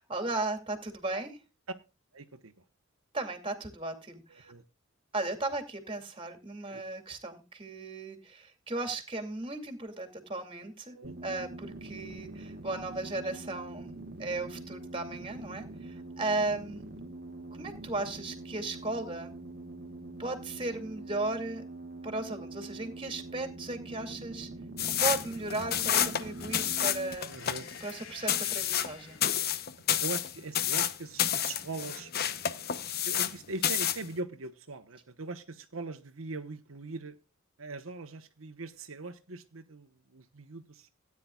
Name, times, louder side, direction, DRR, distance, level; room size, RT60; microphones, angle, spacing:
voice 1, 0.0-1.4 3.1-4.5 5.1-16.8 17.5-19.3 20.2-21.6 22.0-24.5 25.0-27.3 27.8-29.2, right 2 dB, 25° right, 7 dB, 2.4 m, -36 dB
voice 2, 2.1-2.6 4.3-4.6 6.6-6.8 10.9-11.1 16.5-16.6 27.2-27.7 30.0-32.1 33.0-37.2 37.6-40.9, right 3 dB, 85° right, 6 dB, 1.1 m, -41 dB
sound 1, 11.0-27.2, right 2 dB, 45° right, 1.2 m, -44 dB
sound 2, 24.8-33.4 33.6-34.1, left 10 dB, 50° left, 0.8 m, -30 dB
sound 3, 25.3-29.6, left 5 dB, 70° left, 2.7 m, -52 dB
17.0 x 9.7 x 2.4 m, 0.29 s
head